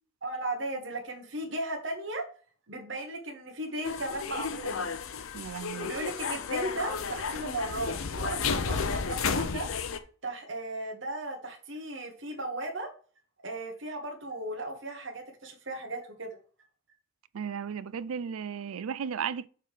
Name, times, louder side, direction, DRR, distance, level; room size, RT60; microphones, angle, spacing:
voice 1, 0.2-2.3 2.7-4.9 5.8-9.7 10.2-12.9 13.4-16.4, right 1 dB, 60° right, 1.5 m, -36 dB
sound 1, 3.8-10.0, left 5 dB, 75° left, 0.7 m, -32 dB
voice 2, 5.3-5.9 17.3-19.5, right 7 dB, 85° right, 0.4 m, -35 dB
6.6 x 3.8 x 4.8 m
head